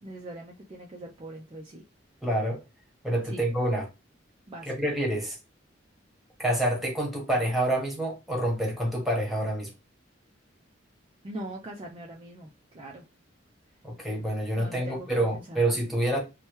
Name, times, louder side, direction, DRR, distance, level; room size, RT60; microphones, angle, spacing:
voice 1, 0.0-1.8 3.2-3.4 4.5-4.7 11.2-13.1 14.5-15.1 15.3-15.6, right 1 dB, 25° right, 0.4 m, -41 dB
voice 2, 2.2-2.6 3.0-3.9 4.7-5.4 6.4-9.7 13.8-16.2, right 1 dB, ahead, 1.1 m, -27 dB
3.0 x 2.2 x 3.0 m
head